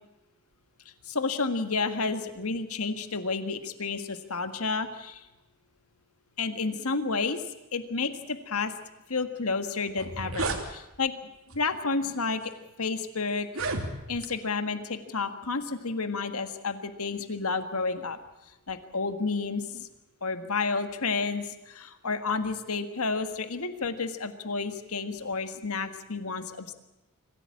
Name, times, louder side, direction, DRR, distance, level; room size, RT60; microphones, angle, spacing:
voice 1, 1.1-5.2 6.4-7.4 7.7-8.7 9.1-12.5 12.8-13.5 14.1-18.2 18.7-19.9 20.2-26.7, left 4 dB, 75° left, 9 dB, 1.7 m, -31 dB
sound 1, 9.9-10.6 11.5-11.7 12.4-12.5 13.4-14.3, right 2 dB, 65° right, 2.8 m, -32 dB
25.0 x 15.5 x 8.5 m, 0.99 s
head